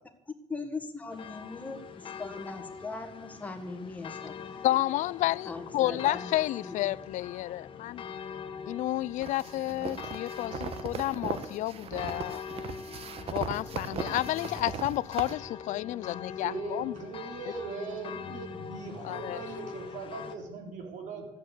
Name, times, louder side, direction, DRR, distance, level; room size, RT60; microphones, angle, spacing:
voice 1, 0.5-4.8 5.4-6.4 6.6-6.9, left 3 dB, 10° left, 1.6 m, -40 dB
sound 1, 1.1-20.4, left 6 dB, 40° left, 1.1 m, -43 dB
voice 2, 4.6-8.0 8.7-12.5 13.3-16.9 19.0-19.4, left 15 dB, 65° left, 0.4 m, -31 dB
voice 3, 5.7-6.1 16.3-21.3, right 4 dB, 65° right, 3.8 m, -40 dB
sound 2, 9.2-15.3, right 6 dB, 45° right, 1.2 m, -38 dB
13.0 x 8.6 x 8.2 m
cardioid pair, 145°, 14 cm